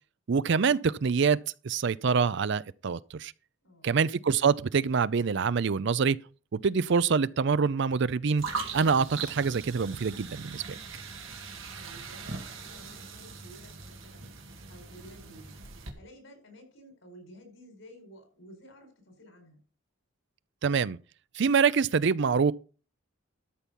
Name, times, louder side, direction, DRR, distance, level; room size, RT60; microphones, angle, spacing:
voice 1, 0.3-1.4 1.6-3.3 3.8-6.2 6.5-8.4 8.7-10.8 20.6-21.0 21.3-22.5, right 5 dB, 60° right, 0.5 m, -25 dB
voice 2, 3.6-4.0 11.8-14.3 14.7-15.6 16.0-19.6, equal, 85° left, 4.8 m, -53 dB
sound 1, 8.4-15.9, right 4 dB, 80° right, 2.3 m, -40 dB
13.0 x 5.8 x 5.3 m
head